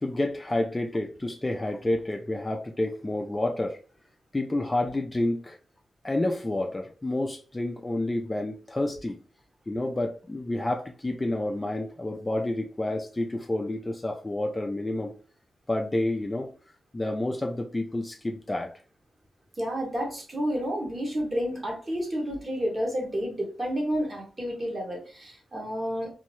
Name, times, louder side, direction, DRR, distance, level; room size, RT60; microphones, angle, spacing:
voice 1, 0.0-3.8 4.3-5.6 6.0-9.2 9.7-15.1 15.7-16.5 16.9-18.7, left 1 dB, 20° left, 3 dB, 0.4 m, -29 dB
voice 2, 19.6-26.1, equal, 30° right, 0 dB, 1.2 m, -30 dB
2.7 x 2.1 x 3.0 m, 0.36 s
cardioid pair, 80°, 0 cm